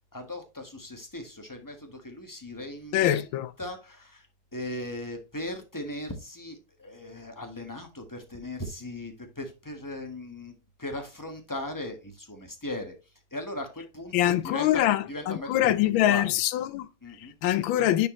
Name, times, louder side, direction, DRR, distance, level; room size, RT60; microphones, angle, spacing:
voice 1, 0.1-4.3 4.5-10.5 10.8-12.9 13.3-16.3 17.0-17.3, left 1 dB, 10° left, 1.1 m, -38 dB
voice 2, 2.9-3.5 14.1-16.9 17.4-18.1, left 13 dB, 85° left, 1.4 m, -24 dB
10.0 x 4.6 x 3.0 m
omnidirectional pair, 2.1 m